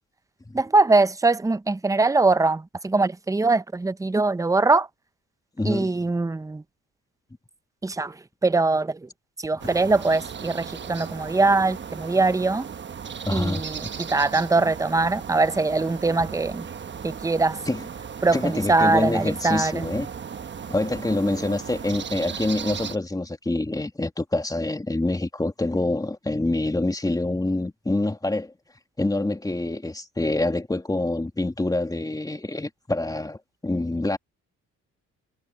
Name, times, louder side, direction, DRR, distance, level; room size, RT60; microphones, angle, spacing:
voice 1, 0.5-4.9 5.6-6.6 7.8-9.1 9.4-12.7 13.3-16.7 17.0-17.6 18.2-19.9, right 3 dB, 10° right, 0.7 m, -22 dB
voice 2, 5.6-5.9 13.2-13.6 17.7-17.8 18.3-20.1 20.7-28.5 29.0-34.2, left 2 dB, 10° left, 2.5 m, -26 dB
sound 1, 9.6-23.0, right 7 dB, 40° right, 1.1 m, -36 dB
cardioid pair, 90°, 30 cm